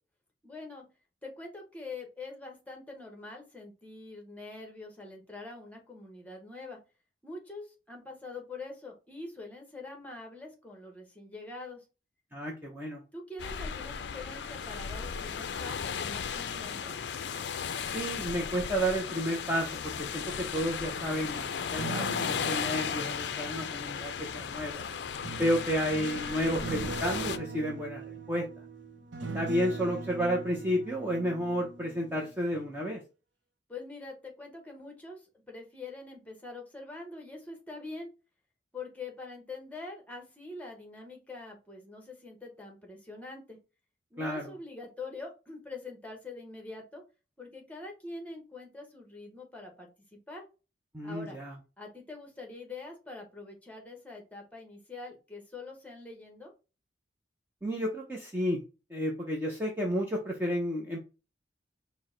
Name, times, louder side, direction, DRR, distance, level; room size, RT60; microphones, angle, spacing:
voice 1, 0.4-0.8 1.2-6.8 7.2-11.8 13.1-17.0 33.7-38.1 38.7-43.6 44.1-47.0 47.4-50.4 51.0-51.4 51.8-56.5, left 3 dB, 10° left, 2 dB, 1.0 m, -44 dB
voice 2, 12.3-13.0 17.8-24.8 25.4-28.0 28.3-28.5 29.3-33.0 44.2-44.5 50.9-51.5 57.6-58.6 58.9-61.0, equal, 10° right, -2 dB, 0.6 m, -31 dB
sound 1, 13.4-27.4, left 7 dB, 65° left, 0.4 m, -35 dB
sound 2, 21.5-24.4 25.2-32.1 32.5-32.8, right 3 dB, 80° right, 0.6 m, -41 dB
4.5 x 2.1 x 3.7 m, 0.32 s
head